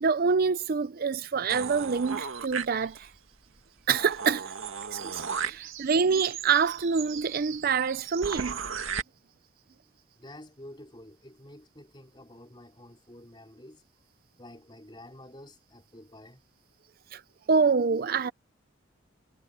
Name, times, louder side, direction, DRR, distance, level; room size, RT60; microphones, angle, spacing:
voice 1, 0.0-3.1 3.9-4.5 4.9-8.6 17.1-17.2 17.5-18.3, right 5 dB, 50° right, 0.5 m, -26 dB
sound 1, 1.5-3.2 3.6-3.7 3.9-9.0, right 6 dB, 85° right, 2.2 m, -36 dB
voice 2, 10.2-13.8 14.4-16.4, left 1 dB, 25° left, 4.4 m, -49 dB
head